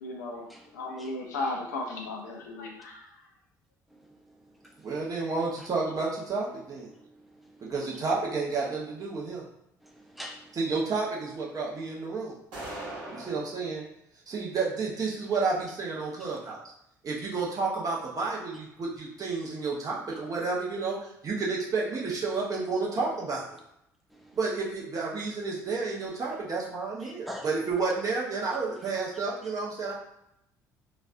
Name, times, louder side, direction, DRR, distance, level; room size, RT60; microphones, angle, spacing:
voice 1, 0.0-0.5 0.7-3.1 4.9-5.3, left 2 dB, 75° left, 1 dB, 0.5 m, -36 dB
voice 2, 4.8-6.9 7.6-9.4 10.5-12.3 13.1-13.8 14.3-16.6 17.0-23.4 24.3-29.9, right 4 dB, 40° right, -3 dB, 1.0 m, -31 dB
voice 3, 9.8-10.5 12.9-13.3 27.0-27.5, equal, ahead, 1 dB, 0.6 m, -43 dB
sound 1, 12.5-13.5, right 1 dB, 65° right, 1.2 m, -39 dB
3.1 x 2.4 x 2.5 m, 0.79 s
figure-of-eight pair, 50°, 9 cm